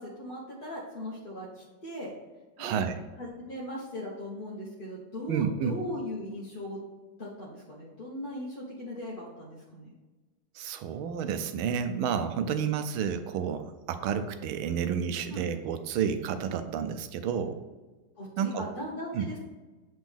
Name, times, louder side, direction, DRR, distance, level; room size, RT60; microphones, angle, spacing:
voice 1, 0.0-2.1 2.6-2.8 3.2-6.8 7.2-9.9 15.3-15.4 18.2-19.4, left 1 dB, 35° left, -5 dB, 1.0 m, -38 dB
voice 2, 2.6-3.0 5.3-5.8 10.5-17.6 18.4-18.7 19.1-19.3, right 7 dB, 85° right, 9 dB, 1.4 m, -30 dB
7.8 x 4.2 x 3.5 m, 1.2 s
omnidirectional pair, 2.3 m